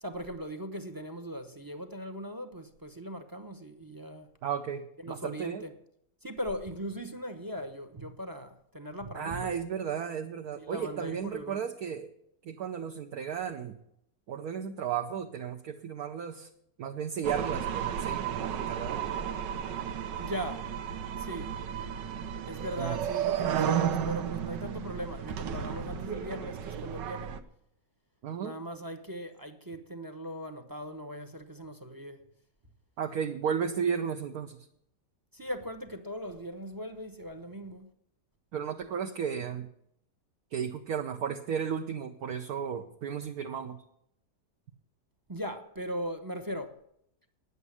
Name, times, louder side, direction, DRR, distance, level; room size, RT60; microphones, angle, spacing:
voice 1, 0.0-4.3 5.0-5.7 6.2-9.5 10.6-11.6 20.2-20.7 21.2-21.5 22.5-27.3 28.4-32.2 35.3-37.9 45.3-46.8, equal, 20° right, 0.5 m, -39 dB
voice 2, 4.4-5.6 9.1-12.1 12.4-13.8 14.3-16.5 16.8-19.0 22.8-23.0 28.2-28.5 33.0-34.6 38.5-39.7 40.5-43.8, right 7 dB, 65° right, 1.3 m, -34 dB
sound 1, 17.2-27.4, right 9 dB, 80° right, 1.5 m, -33 dB
9.7 x 8.2 x 9.7 m
omnidirectional pair, 1.9 m